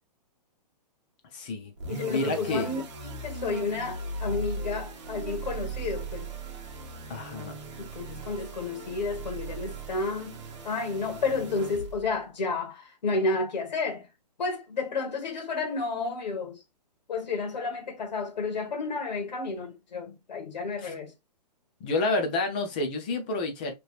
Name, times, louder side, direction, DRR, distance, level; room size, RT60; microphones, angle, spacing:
voice 1, 1.3-1.7 2.1-2.7 7.1-7.6 20.8-20.9 21.8-23.7, left 2 dB, 15° left, 0.3 m, -29 dB
sound 1, 1.8-12.2, right 3 dB, 45° right, 1.0 m, -38 dB
voice 2, 1.9-6.3 7.8-10.4 10.6-14.1 14.4-16.6 17.1-21.1, left 3 dB, 85° left, 1.4 m, -31 dB
3.2 x 2.9 x 2.3 m
hypercardioid pair, 165°, 21 cm